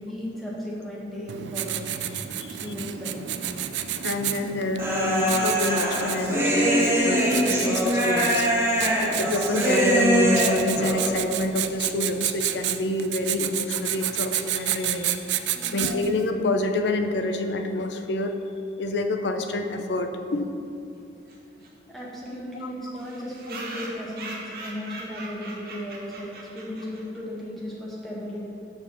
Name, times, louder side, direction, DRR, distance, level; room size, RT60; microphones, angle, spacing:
voice 1, 0.0-1.8 2.5-3.2 8.7-9.0 15.5-15.8 21.9-28.5, equal, ahead, -6 dB, 1.5 m, -35 dB
Writing, 1.3-16.2, right 11 dB, 85° right, 0.4 m, -31 dB
voice 2, 2.2-2.6 4.0-8.4 9.2-15.5 15.7-18.3 18.8-20.6, left 2 dB, 80° left, 6 dB, 0.6 m, -27 dB
Human voice, 4.8-11.2, equal, 15° right, 1.8 m, -23 dB
sound 1, 21.3-21.4 21.6-21.7 22.0-22.1 22.3-22.4 23.0-27.2, right 2 dB, 55° right, 1.3 m, -40 dB
6.7 x 4.9 x 6.7 m, 2.7 s
head